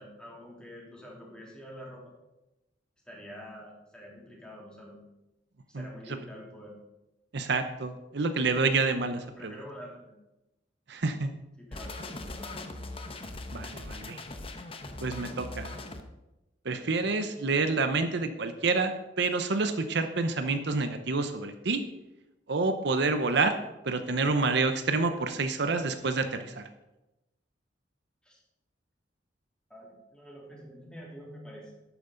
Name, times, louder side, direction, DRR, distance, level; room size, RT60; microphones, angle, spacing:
voice 1, 0.0-2.1 3.0-5.0 5.7-6.7 9.4-10.1 11.6-12.5 28.2-28.4 29.7-31.7, equal, 5° left, -3 dB, 3.1 m, -47 dB
voice 2, 7.3-9.5 10.9-11.3 13.5-14.2 15.0-15.8 16.6-21.8 22.5-23.5 23.8-26.6, right 3 dB, 65° right, 8 dB, 0.8 m, -28 dB
sound 1, 11.7-16.0, left 2 dB, 30° left, 0.9 m, -40 dB
12.0 x 9.4 x 3.9 m, 0.97 s
head